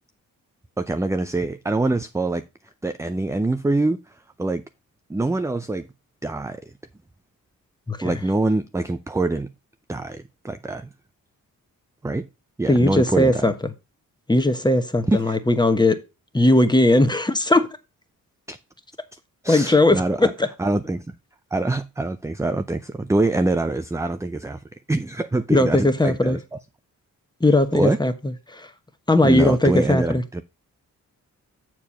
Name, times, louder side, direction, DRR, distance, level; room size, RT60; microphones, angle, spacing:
voice 1, 0.8-2.4 2.8-4.6 5.1-5.9 6.2-6.6 8.0-9.5 9.9-10.9 12.0-12.2 12.6-13.5 15.1-15.3 18.5-18.6 19.4-20.3 20.6-21.1 21.5-26.6 27.7-28.0 29.2-30.4, right 2 dB, 10° right, 0.5 m, -24 dB
voice 2, 12.7-13.5 14.3-16.0 16.3-17.7 19.5-20.5 25.5-26.4 27.4-28.7 29.1-30.2, left 1 dB, 10° left, 1.2 m, -18 dB
7.1 x 4.7 x 5.7 m
cardioid pair, 55°, 35 cm